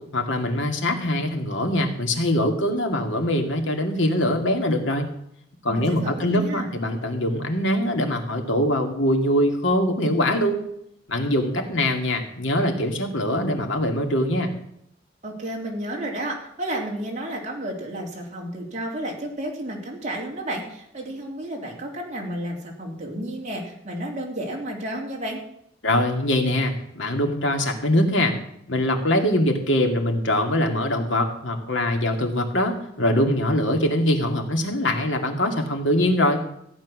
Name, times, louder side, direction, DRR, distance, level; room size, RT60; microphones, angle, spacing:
voice 1, 0.1-5.1 5.6-10.6 11.1-14.5 25.8-28.3 28.7-36.4, left 1 dB, 75° left, 4 dB, 2.3 m, -23 dB
voice 2, 5.7-6.7 15.2-25.4, right 1 dB, 40° right, -1 dB, 3.4 m, -32 dB
15.0 x 9.2 x 6.3 m, 0.73 s
head